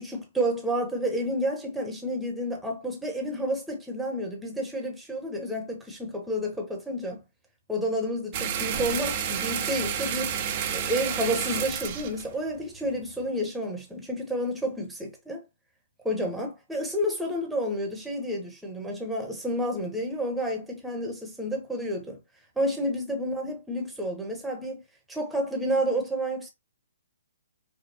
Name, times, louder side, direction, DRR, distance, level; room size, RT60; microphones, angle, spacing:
voice 1, 0.0-7.2 7.7-10.4 10.7-15.4 16.0-22.2 22.6-24.8 25.1-26.5, equal, 5° right, 1.2 m, -30 dB
sound 1, 8.3-13.2, right 8 dB, 35° right, 0.8 m, -30 dB
5.2 x 2.3 x 2.8 m
figure-of-eight pair, 130°, 0 cm